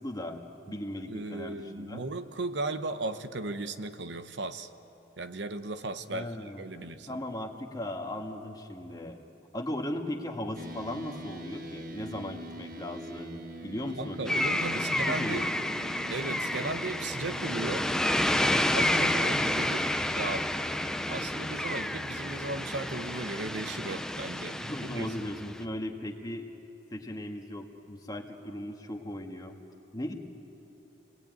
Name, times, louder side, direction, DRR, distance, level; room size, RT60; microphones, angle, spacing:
voice 1, 0.0-2.1 6.1-9.2 9.5-15.8 24.6-26.5 26.9-29.6 29.9-30.1, left 1 dB, 20° left, 3 dB, 1.7 m, -38 dB
voice 2, 1.1-4.7 5.2-7.2 14.0-15.4 16.1-17.9 18.7-19.9 20.1-20.5 21.1-25.1, right 2 dB, 70° right, 10 dB, 0.9 m, -36 dB
sound 1, 10.5-25.6, right 1 dB, 45° right, 1.6 m, -45 dB
sound 2, 14.3-25.6, left 1 dB, 5° left, 0.6 m, -30 dB
28.0 x 19.5 x 9.2 m, 3.0 s
head